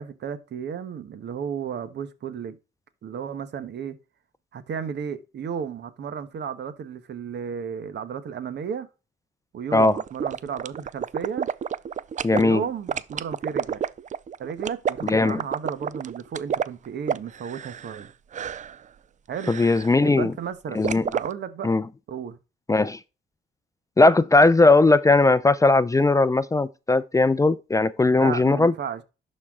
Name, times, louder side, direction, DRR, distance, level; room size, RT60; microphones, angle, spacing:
voice 1, 0.0-2.6 3.0-4.0 4.5-8.9 9.5-11.5 12.3-13.8 14.4-18.1 19.3-19.6 20.0-21.7 22.1-22.4 28.1-29.0, right 7 dB, 60° right, 1.2 m, -33 dB
sound 1, 9.8-12.4 12.9-18.1 18.3-18.8 19.3-19.9 20.8-21.3, right 8 dB, 40° right, 0.4 m, -29 dB
voice 2, 12.2-12.6 15.0-15.4 19.5-20.3 20.7-21.0 21.6-21.8 22.7-23.0 24.0-28.7, left 2 dB, 15° left, 0.5 m, -18 dB
11.0 x 4.4 x 3.7 m
cardioid pair, 90°, 20 cm